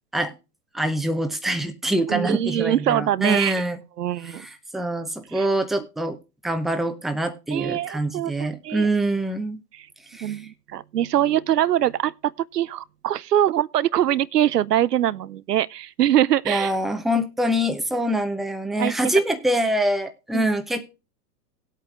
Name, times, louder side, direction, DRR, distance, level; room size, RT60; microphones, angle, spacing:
voice 1, 0.7-3.8 4.2-6.2 6.4-9.6 10.1-10.4 16.5-20.9, right 1 dB, ahead, 0.7 m, -25 dB
voice 2, 2.1-3.5 4.0-4.5 5.3-5.5 7.5-8.9 9.7-9.9 10.2-16.7 18.8-18.9 20.3-20.4, right 11 dB, 75° right, 0.6 m, -23 dB
18.0 x 8.3 x 2.4 m
figure-of-eight pair, 100°, 48 cm